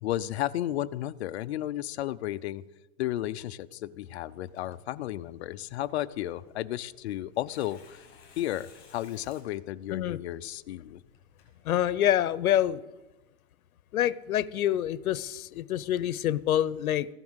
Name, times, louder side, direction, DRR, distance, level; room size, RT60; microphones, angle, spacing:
voice 1, 0.0-2.6 3.0-8.1 8.4-11.0, left 13 dB, 50° left, 15 dB, 0.7 m, -33 dB
Tearing, 4.5-12.2, left 6 dB, 30° left, 6.2 m, -59 dB
voice 2, 11.6-12.8 13.9-17.1, left 11 dB, 85° left, 19 dB, 0.8 m, -26 dB
15.5 x 11.0 x 8.0 m, 1.1 s
hypercardioid pair, 155°, 42 cm